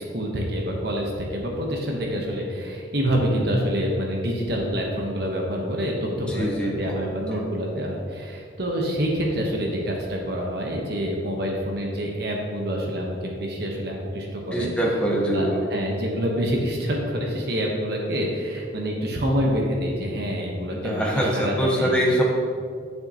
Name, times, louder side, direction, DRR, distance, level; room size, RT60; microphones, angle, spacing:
voice 1, 0.0-14.7 15.2-21.9, equal, 55° right, 0 dB, 1.1 m, -27 dB
voice 2, 6.3-7.0 7.3-7.4 14.5-15.6 20.7-22.2, right 1 dB, 5° left, -3 dB, 1.0 m, -24 dB
8.8 x 7.2 x 2.9 m, 2.2 s
head